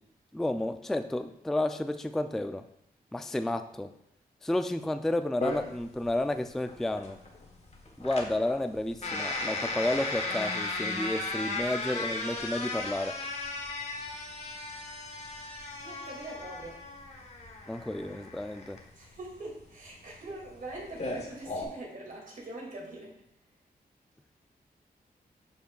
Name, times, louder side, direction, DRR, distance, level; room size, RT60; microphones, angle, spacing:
voice 1, 0.3-2.6 3.1-3.9 4.4-7.2 8.0-13.1 17.7-18.8, left 1 dB, ahead, 8 dB, 0.3 m, -31 dB
sound 1, 5.4-21.6, left 2 dB, 45° left, 1.2 m, -36 dB
voice 2, 15.8-16.8 19.0-23.1, right 2 dB, 60° right, -3 dB, 2.3 m, -43 dB
11.5 x 5.2 x 2.3 m, 0.74 s
wide cardioid pair, 125°, 16 cm